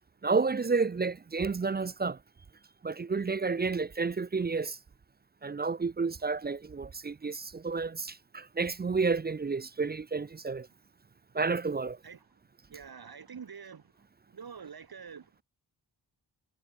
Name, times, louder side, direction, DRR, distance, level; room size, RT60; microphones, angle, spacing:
voice 1, 0.2-2.2 2.8-4.8 5.4-10.7 11.3-12.0, right 4 dB, 25° right, 0.3 m, -30 dB
voice 2, 12.0-12.4 12.7-15.4, right 6 dB, 55° right, 1.0 m, -47 dB
wide cardioid pair, 65°, 45 cm